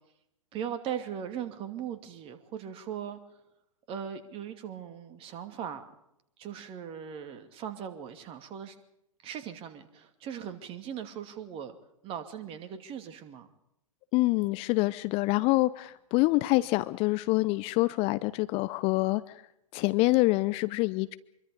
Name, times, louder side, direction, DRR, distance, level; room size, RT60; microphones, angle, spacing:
voice 1, 0.5-3.2 3.9-5.9 6.4-8.8 9.2-11.8 12.0-13.5, right 8 dB, 30° right, 9 dB, 2.5 m, -39 dB
voice 2, 14.1-19.2 19.7-21.2, left 21 dB, 30° left, 15 dB, 0.7 m, -26 dB
25.5 x 23.5 x 5.3 m, 0.79 s
figure-of-eight pair, 105°, 18 cm